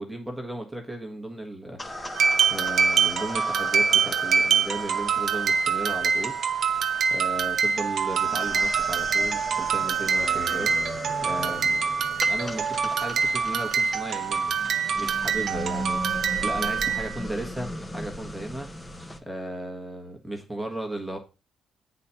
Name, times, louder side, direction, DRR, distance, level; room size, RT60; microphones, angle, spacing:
voice 1, 0.0-6.4 6.8-11.8 12.3-14.6 14.9-18.7 19.2-21.2, right 1 dB, ahead, 1.5 m, -35 dB
sound 1, 1.8-19.2, left 1 dB, 15° left, 1.4 m, -37 dB
sound 2, 2.1-17.2, right 6 dB, 60° right, 0.9 m, -25 dB
8.3 x 4.2 x 5.8 m
cardioid pair, 90°, 0 cm